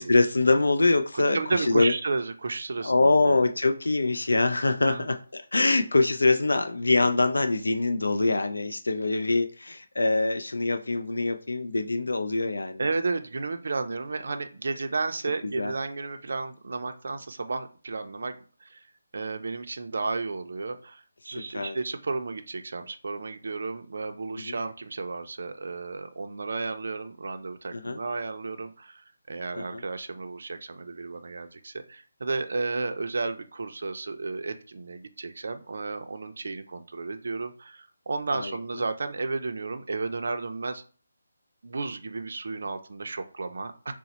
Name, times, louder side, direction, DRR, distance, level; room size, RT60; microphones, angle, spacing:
voice 1, 0.0-1.9 2.8-12.8 15.6-15.7 21.4-21.8 24.4-24.6 27.7-28.0 29.6-29.8 38.3-38.6, left 2 dB, 90° left, 7 dB, 0.3 m, -24 dB
voice 2, 1.1-3.4 4.8-5.1 12.8-18.4 18.6-18.9 19.1-40.8 41.6-43.9, right 3 dB, 65° right, 7 dB, 0.4 m, -33 dB
4.0 x 2.0 x 2.9 m, 0.40 s
figure-of-eight pair, 165°, 0 cm